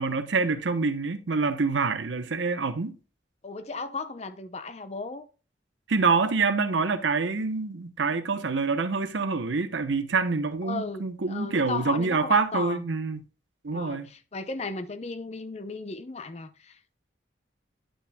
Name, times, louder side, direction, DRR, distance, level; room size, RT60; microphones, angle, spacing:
voice 1, 0.0-3.0 5.9-13.2 13.6-14.1, right 4 dB, 85° right, 0.8 m, -26 dB
voice 2, 3.4-5.2 10.6-12.8 13.7-16.9, left 3 dB, 35° left, 0.5 m, -35 dB
9.8 x 6.0 x 2.2 m
head